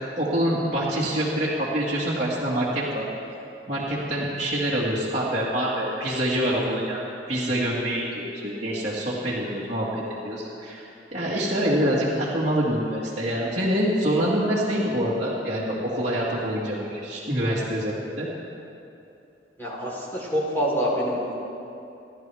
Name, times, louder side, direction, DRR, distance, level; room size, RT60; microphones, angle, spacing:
voice 1, 0.2-3.0 3.7-7.0 7.3-10.9 11.1-18.3, equal, 40° right, -9 dB, 2.0 m, -26 dB
voice 2, 19.6-21.4, equal, 15° left, -5 dB, 3.8 m, -26 dB
29.0 x 11.5 x 3.5 m, 2.8 s
head